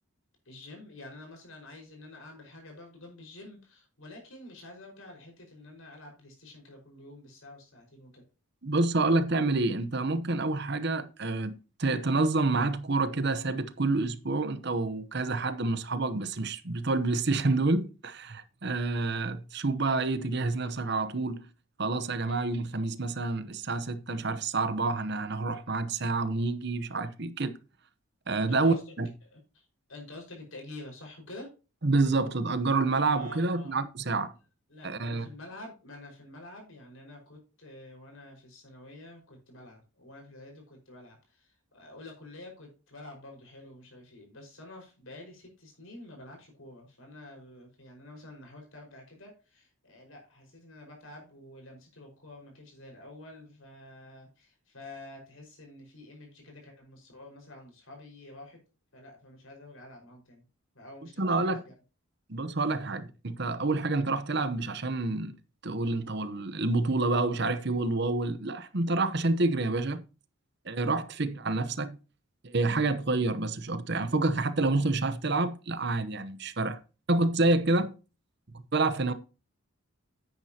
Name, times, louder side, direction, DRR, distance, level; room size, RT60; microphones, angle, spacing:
voice 1, 0.4-8.2 22.3-22.4 28.5-28.9 29.2-31.5 33.1-33.7 34.7-58.6 58.9-60.4 60.7-61.7, left 2 dB, 70° left, 5.2 m, -48 dB
voice 2, 8.6-21.5 21.8-27.6 28.3-29.1 31.8-34.3 34.8-35.3 61.2-61.6 62.3-65.3 65.6-70.0 70.7-72.0 72.4-76.8 77.1-77.9 78.7-79.1, right 3 dB, 50° right, 0.9 m, -28 dB
10.0 x 9.4 x 2.9 m
head